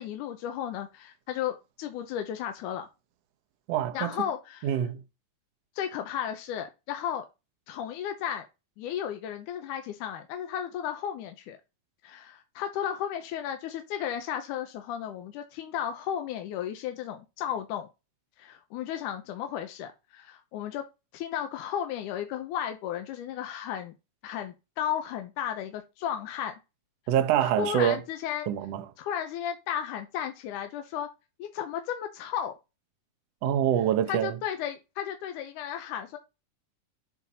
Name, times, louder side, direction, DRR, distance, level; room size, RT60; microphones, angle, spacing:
voice 1, 0.0-2.9 3.9-4.8 5.8-7.3 7.7-8.5 8.8-11.6 12.0-17.9 18.4-20.9 21.1-23.9 24.2-26.5 27.4-28.5 29.0-31.1 31.4-32.5 34.1-36.2, left 9 dB, 85° left, 2.3 m, -34 dB
voice 2, 3.7-4.1 4.6-5.0 27.1-28.0 28.5-28.8 33.4-34.4, right 10 dB, 70° right, 1.6 m, -25 dB
8.5 x 4.0 x 4.2 m
omnidirectional pair, 3.6 m